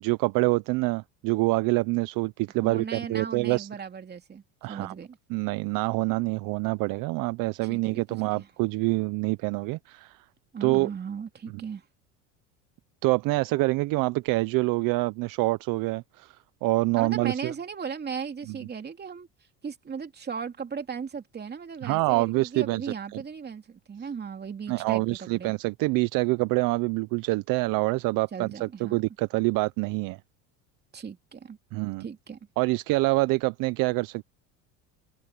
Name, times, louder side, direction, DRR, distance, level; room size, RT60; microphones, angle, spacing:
voice 1, 0.0-3.7 4.6-4.9 5.3-10.2 10.6-10.9 13.0-17.5 21.8-22.9 24.7-30.2 31.7-32.1 32.6-34.2, right 23 dB, 65° right, 0.8 m, -26 dB
voice 2, 2.6-4.4 4.7-5.2 7.6-8.5 10.5-11.8 16.9-19.3 19.6-25.5 28.3-29.0 30.9-31.6 32.0-32.4, right 6 dB, 25° right, 3.0 m, -37 dB
supercardioid pair, 110°, 36 cm